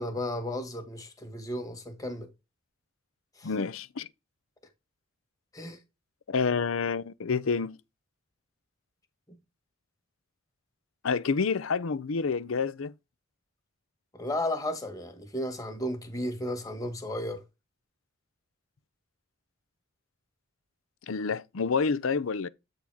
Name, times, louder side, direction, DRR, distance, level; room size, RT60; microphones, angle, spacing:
voice 1, 0.0-2.3 3.4-3.5 5.5-5.8 14.1-17.4, left 1 dB, 15° left, 1.5 m, -34 dB
voice 2, 3.4-4.1 6.3-7.8 11.0-12.9 21.1-22.5, left 5 dB, 75° left, 0.6 m, -28 dB
8.5 x 4.0 x 4.8 m
head